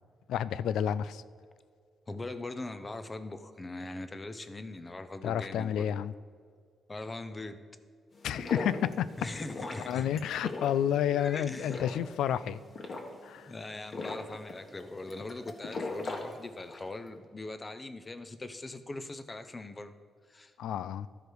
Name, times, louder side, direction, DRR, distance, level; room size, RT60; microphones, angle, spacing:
voice 1, 0.3-1.2 5.2-6.1 8.2-9.1 9.4-9.5 9.9-12.6 13.2-13.5 20.6-21.1, left 9 dB, 85° left, 16 dB, 0.3 m, -30 dB
voice 2, 2.1-5.9 6.9-7.6 9.2-10.1 10.9-11.8 13.5-19.9 20.3-20.5, left 2 dB, 20° left, 10 dB, 0.6 m, -41 dB
sound 1, 8.1-17.0, left 3 dB, 40° left, 1.3 m, -40 dB
13.0 x 5.0 x 4.6 m, 2.1 s
cardioid pair, 115°, 0 cm